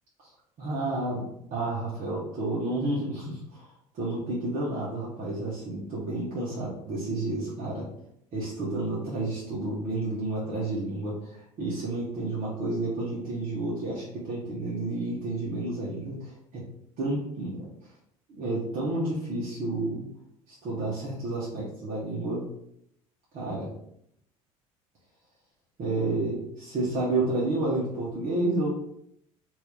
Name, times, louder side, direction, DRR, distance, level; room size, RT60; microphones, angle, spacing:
voice 1, 0.6-1.2 1.5-7.8 8.3-16.6 17.0-17.6 18.3-20.0 20.5-22.4 23.3-23.7 25.8-28.7, right 2 dB, 45° right, -7 dB, 1.1 m, -30 dB
3.0 x 2.7 x 3.4 m, 0.74 s
hypercardioid pair, 65°, 18 cm